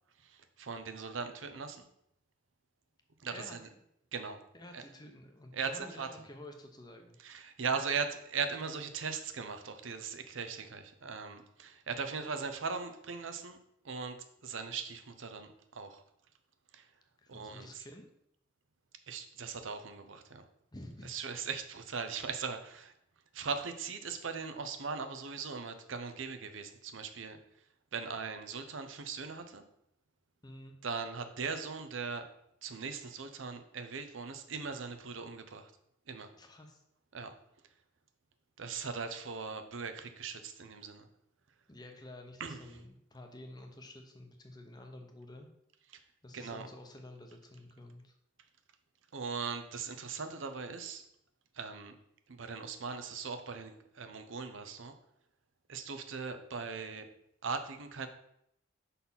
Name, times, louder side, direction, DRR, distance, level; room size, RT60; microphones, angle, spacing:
voice 1, 0.2-1.9 3.2-3.6 4.1-4.4 4.7-4.8 5.5-6.1 7.2-13.6 13.8-14.2 14.4-16.0 16.7-16.9 17.3-17.8 19.1-20.4 21.0-22.9 23.3-27.4 27.9-29.6 30.8-32.3 32.6-35.7 36.1-36.3 37.1-37.3 38.6-41.1 42.4-42.6 46.3-46.7 49.1-51.1 51.5-52.0 52.3-54.9 55.7-57.1 57.4-58.1, right 5 dB, 80° right, 8 dB, 0.7 m, -39 dB
voice 2, 4.5-7.2 17.2-18.1 20.7-21.1 30.4-30.8 36.4-36.8 41.7-45.5 46.2-48.1, left 1 dB, 20° left, 4 dB, 0.8 m, -50 dB
5.8 x 4.2 x 5.5 m, 0.76 s
head